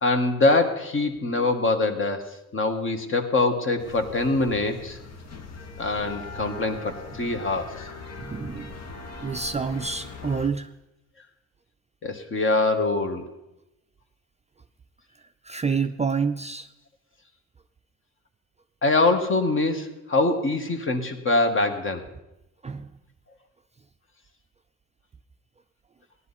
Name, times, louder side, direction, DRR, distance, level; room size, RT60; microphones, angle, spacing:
voice 1, 0.0-5.0 5.8-7.9 12.0-13.2 18.8-22.0, left 2 dB, 45° left, 5 dB, 1.6 m, -24 dB
sound 1, 3.8-10.5, left 3 dB, 60° left, 1.4 m, -40 dB
voice 2, 8.2-8.8 9.2-10.7 15.4-16.7 22.6-22.9, right 5 dB, 20° right, 7 dB, 0.4 m, -28 dB
16.5 x 11.0 x 4.2 m, 0.92 s
cardioid pair, 90°, 30 cm